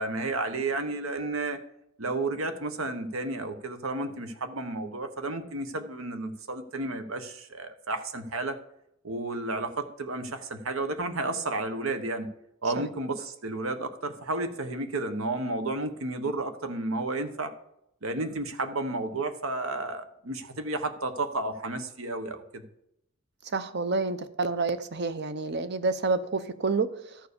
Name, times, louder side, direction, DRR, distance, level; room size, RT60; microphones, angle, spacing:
voice 1, 0.0-1.6 2.0-8.6 9.0-12.3 12.6-17.5 18.0-22.6, right 2 dB, 80° right, 9 dB, 1.1 m, -32 dB
voice 2, 23.5-27.2, right 3 dB, 55° right, 12 dB, 0.8 m, -29 dB
13.0 x 4.7 x 6.7 m, 0.78 s
head